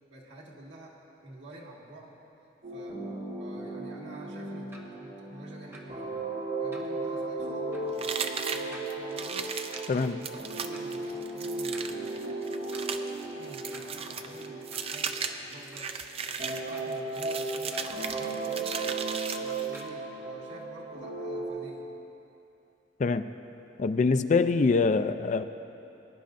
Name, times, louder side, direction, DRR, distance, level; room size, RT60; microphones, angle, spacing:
voice 1, 0.1-1.0 1.2-2.1 2.7-3.0 3.4-6.2 6.6-9.5 9.9-12.1 13.2-15.9 16.2-18.8 19.3-21.9, right 1 dB, 85° right, -4 dB, 2.0 m, -49 dB
sound 1, 2.6-15.9 16.4-21.5, right 3 dB, 55° right, 1.9 m, -36 dB
sound 2, 4.7-4.9 5.7-5.8 6.7-7.0 7.7-7.9 8.7-8.9 9.7-9.8 10.7-10.8 11.7-11.9 12.7-12.9 13.7-13.8 14.7-14.9 15.7-15.9 16.7-17.0 17.7-17.8 18.7-18.9 19.7-19.9, right 1 dB, 15° right, 1.0 m, -50 dB
sound 3, 8.0-19.9, right 6 dB, 30° right, 0.4 m, -37 dB
voice 2, 9.9-10.2 23.0-23.2 23.8-25.4, left 4 dB, 40° left, 10 dB, 0.3 m, -24 dB
21.0 x 10.0 x 2.6 m, 3.0 s
head